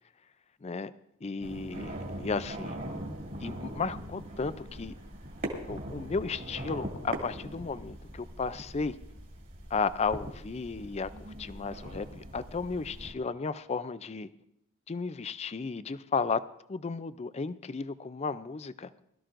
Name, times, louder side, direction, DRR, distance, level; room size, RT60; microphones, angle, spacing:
voice 1, 0.6-0.9 1.2-2.8 3.4-4.9 5.7-9.0 9.7-14.3 14.9-16.4 16.7-18.9, left 4 dB, 30° left, 14 dB, 0.4 m, -34 dB
sound 1, 1.4-13.1, right 1 dB, 40° right, 2.4 m, -41 dB
21.5 x 13.0 x 2.6 m, 0.77 s
head